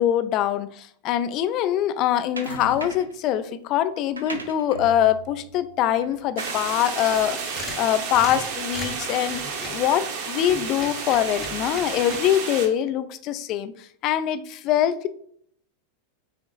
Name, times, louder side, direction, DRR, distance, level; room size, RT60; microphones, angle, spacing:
voice 1, 0.0-9.4 9.7-15.1, left 11 dB, 40° left, 13 dB, 0.3 m, -23 dB
sound 1, 2.4-3.2 3.9-8.6, right 2 dB, 80° right, 0.5 m, -39 dB
sound 2, 6.4-12.7, right 5 dB, 45° right, 0.7 m, -32 dB
sound 3, 7.2-9.8 10.4-12.2, left 3 dB, 20° left, 0.7 m, -37 dB
5.0 x 3.8 x 2.2 m, 0.63 s
figure-of-eight pair, 90°, 0 cm